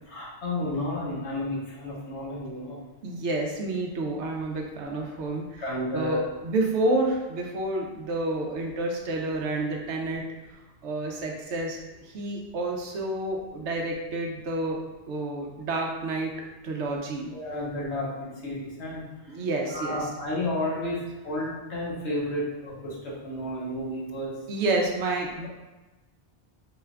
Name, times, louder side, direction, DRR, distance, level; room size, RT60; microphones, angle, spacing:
voice 1, 0.1-2.8 5.6-6.2 17.3-19.0 19.7-24.3, left 1 dB, 80° left, -5 dB, 1.4 m, -31 dB
voice 2, 3.0-5.6 5.9-10.2 10.8-14.8 15.1-16.3 16.6-17.3 19.3-20.1 24.5-25.5, right 2 dB, 85° right, 1 dB, 1.0 m, -29 dB
4.6 x 2.4 x 3.3 m, 1.1 s
omnidirectional pair, 1.1 m